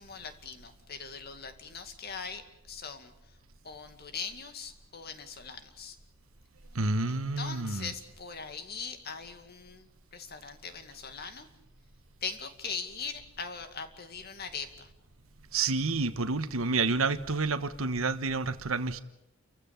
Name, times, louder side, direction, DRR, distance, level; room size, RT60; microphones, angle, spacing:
voice 1, 0.0-3.1 3.6-6.0 7.1-9.9 10.1-11.5 12.2-14.9, left 5 dB, 50° left, 2.3 m, -41 dB
voice 2, 6.7-7.9 15.5-19.0, right 3 dB, 80° right, 1.3 m, -29 dB
29.5 x 15.0 x 8.9 m
head